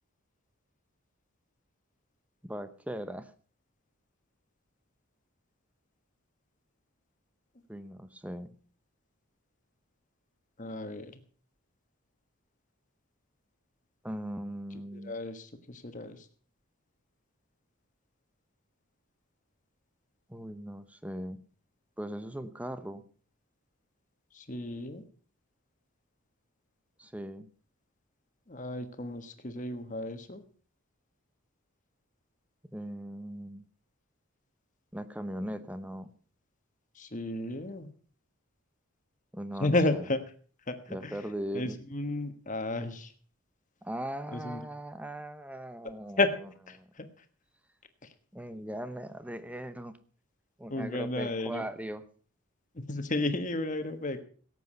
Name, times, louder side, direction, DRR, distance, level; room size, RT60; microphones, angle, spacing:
voice 1, 2.4-3.3 7.7-8.6 14.0-15.2 20.3-21.4 22.0-23.0 27.0-27.5 32.7-33.7 34.9-36.1 39.3-40.1 40.9-41.8 43.8-46.2 46.7-46.9 48.3-49.9 50.6-52.0, right 1 dB, 5° right, 11 dB, 0.8 m, -39 dB
voice 2, 10.6-11.2 14.9-16.2 24.3-25.0 28.5-30.4 37.0-37.9 39.6-40.2 40.7-41.2 41.5-43.1 44.3-44.6 46.2-46.3 46.7-47.0 50.7-51.6 52.7-54.2, left 2 dB, 35° left, 8 dB, 1.4 m, -32 dB
17.5 x 8.3 x 5.5 m, 0.43 s
head